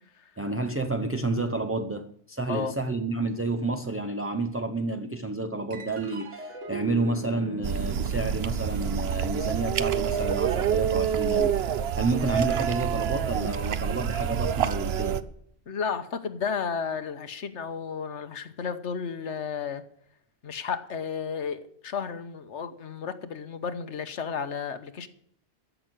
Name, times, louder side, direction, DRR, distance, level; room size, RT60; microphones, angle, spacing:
voice 1, 0.4-15.2, right 2 dB, 15° right, 0.5 m, -30 dB
sound 1, 5.7-12.4, right 2 dB, 90° right, 2.0 m, -41 dB
sound 2, 7.6-15.2, right 8 dB, 65° right, 0.9 m, -27 dB
voice 2, 15.7-19.8 20.4-25.1, left 6 dB, 80° left, 1.4 m, -33 dB
14.0 x 6.1 x 8.9 m
omnidirectional pair, 1.2 m